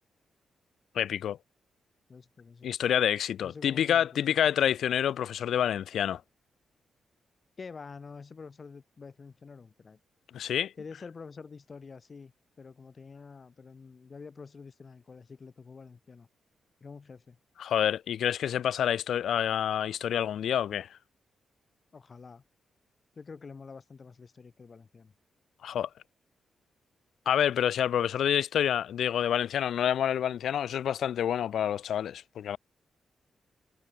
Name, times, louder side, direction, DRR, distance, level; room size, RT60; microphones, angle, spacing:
voice 1, 0.9-1.4 2.6-6.2 10.3-10.7 17.6-20.9 25.6-25.9 27.3-32.6, left 9 dB, 80° left, 0.4 m, -28 dB
voice 2, 2.1-2.7 3.4-4.7 7.6-10.0 10.8-16.3 16.8-17.4 21.9-22.4 23.1-25.1, left 5 dB, 45° left, 6.4 m, -47 dB
cardioid pair, 70°, 0 cm